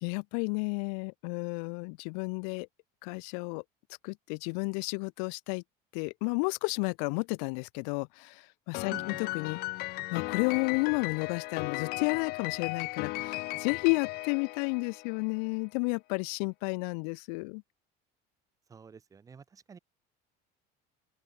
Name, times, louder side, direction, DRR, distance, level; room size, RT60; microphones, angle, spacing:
voice 1, 0.0-2.7 3.0-3.6 4.0-5.6 5.9-8.9 9.3-9.6 10.1-17.6, left 40 dB or more, 85° left, 0.5 m, -32 dB
Piano, 8.7-15.3, left 21 dB, 50° left, 1.6 m, -36 dB
voice 2, 8.9-9.2 18.7-19.8, right 6 dB, 15° right, 2.7 m, -49 dB
open air
cardioid pair, 175°, 19 cm